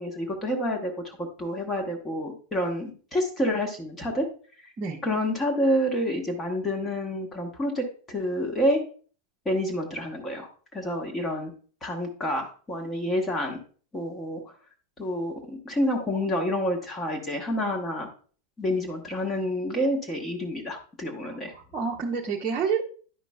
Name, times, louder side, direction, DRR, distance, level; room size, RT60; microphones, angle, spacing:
voice 1, 0.0-4.3 4.6-4.7 5.0-8.8 9.4-11.5 11.8-13.6 13.9-14.4 15.0-18.1 18.6-21.5, equal, 15° left, 1 dB, 1.2 m, -28 dB
voice 2, 21.2-22.8, right 6 dB, 25° right, -3 dB, 0.8 m, -29 dB
10.5 x 5.1 x 2.2 m, 0.41 s
figure-of-eight pair, 90°, 0 cm